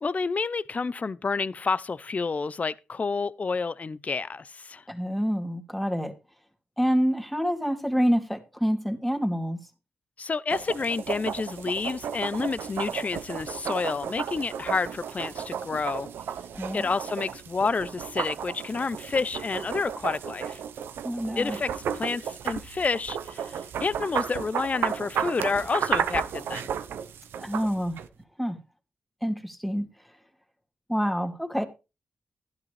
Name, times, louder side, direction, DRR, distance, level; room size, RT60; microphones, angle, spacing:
voice 1, 0.0-4.8 10.2-16.1 16.7-20.6 21.4-26.7, left 4 dB, 40° left, 0.5 m, -29 dB
voice 2, 4.9-6.1 6.8-9.6 16.5-16.9 21.0-21.6 27.4-28.0 28.4-28.6 29.2-29.9 30.9-31.7, equal, ahead, 2.4 m, -27 dB
sound 1, 10.5-28.1, right 8 dB, 90° right, 0.8 m, -33 dB
12.0 x 11.5 x 3.3 m
cardioid pair, 55°, 4 cm